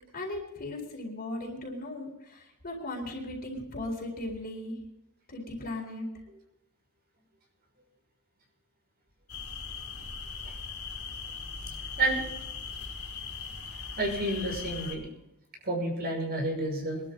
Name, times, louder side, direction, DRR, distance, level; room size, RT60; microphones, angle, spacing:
voice 1, 0.1-4.8 5.3-6.1, left 1 dB, 45° left, 0 dB, 4.2 m, -37 dB
sound 1, 9.3-15.0, left 5 dB, 80° left, 3.4 m, -39 dB
voice 2, 14.0-15.0 15.6-17.0, right 2 dB, 45° right, 1 dB, 6.1 m, -30 dB
23.5 x 12.5 x 4.0 m, 0.87 s
head